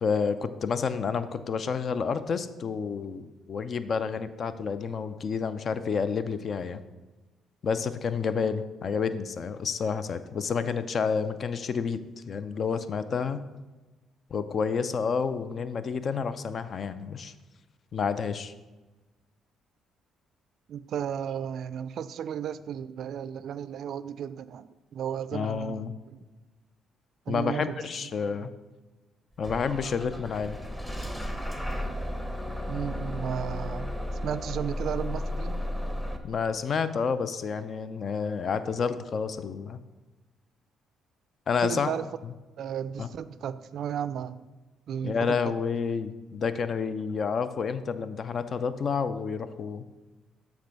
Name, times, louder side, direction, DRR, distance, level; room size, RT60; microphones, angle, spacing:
voice 1, 0.0-6.8 7.6-12.0 12.3-13.4 14.3-17.3 17.9-18.5 25.3-25.9 27.3-28.5 29.4-30.6 36.2-39.8 41.5-41.9 43.0-43.1 45.0-49.8, left 5 dB, 55° left, 12 dB, 0.5 m, -29 dB
voice 2, 20.7-26.2 27.3-28.1 28.4-28.5 32.7-33.9 34.2-35.6 41.6-42.0 42.6-44.5 44.9-45.5, right 8 dB, 65° right, 15 dB, 0.3 m, -34 dB
Bus / Engine starting, 29.4-36.2, left 1 dB, 10° left, 0.9 m, -34 dB
7.4 x 3.5 x 5.8 m, 1.2 s
supercardioid pair, 65°, 0 cm